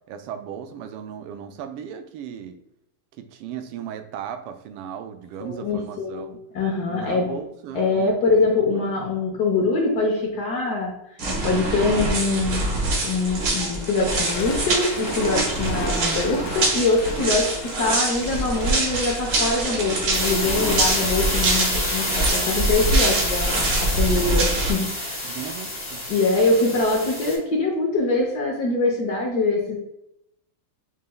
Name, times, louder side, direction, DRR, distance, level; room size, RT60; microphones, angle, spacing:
voice 1, 0.1-2.6 3.2-6.4 6.9-8.1 8.7-8.9 25.2-26.0, right 9 dB, 90° right, 8 dB, 1.5 m, -36 dB
voice 2, 5.4-7.3 7.7-10.9 11.4-12.6 13.0-25.4 26.1-29.8, left 3 dB, 65° left, -1 dB, 1.1 m, -23 dB
sound 1, 11.2-24.7, right 2 dB, 60° right, 1.7 m, -24 dB
Toilet flush, 13.4-23.5, left 5 dB, 80° left, 1.5 m, -40 dB
sound 2, 20.1-27.4, left 1 dB, 25° left, 0.7 m, -28 dB
5.4 x 3.3 x 2.2 m, 0.80 s
omnidirectional pair, 2.4 m